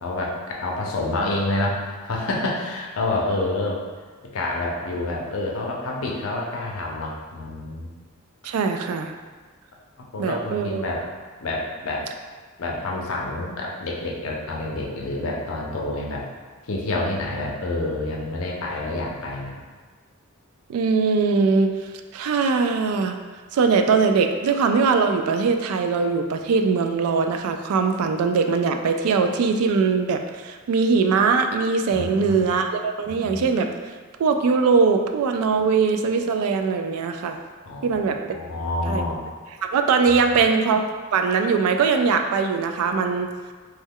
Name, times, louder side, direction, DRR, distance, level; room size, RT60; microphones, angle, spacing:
voice 1, 0.0-3.8 4.2-7.9 10.1-11.0 11.4-12.1 12.6-16.2 16.6-19.6 31.9-32.5 33.0-33.4 37.6-39.2 40.1-40.4, left 2 dB, 65° left, -2 dB, 0.5 m, -28 dB
voice 2, 8.4-9.1 10.2-10.8 20.7-21.7 22.1-23.1 23.5-33.7 34.2-37.4 37.8-38.2 38.9-39.0 39.7-43.3, right 5 dB, 80° right, 10 dB, 0.3 m, -21 dB
3.1 x 2.2 x 3.5 m, 1.4 s
head